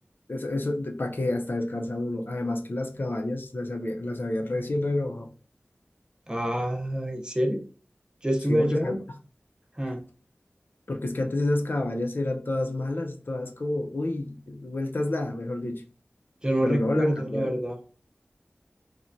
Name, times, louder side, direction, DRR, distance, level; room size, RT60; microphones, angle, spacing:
voice 1, 0.3-5.3 8.5-9.0 10.9-15.8 16.6-17.5, left 2 dB, 55° left, 4 dB, 0.5 m, -29 dB
voice 2, 6.3-7.6 8.2-9.0 9.8-10.0 16.4-17.8, equal, 20° right, 2 dB, 0.6 m, -26 dB
3.1 x 2.1 x 2.5 m, 0.37 s
wide cardioid pair, 50°, 4 cm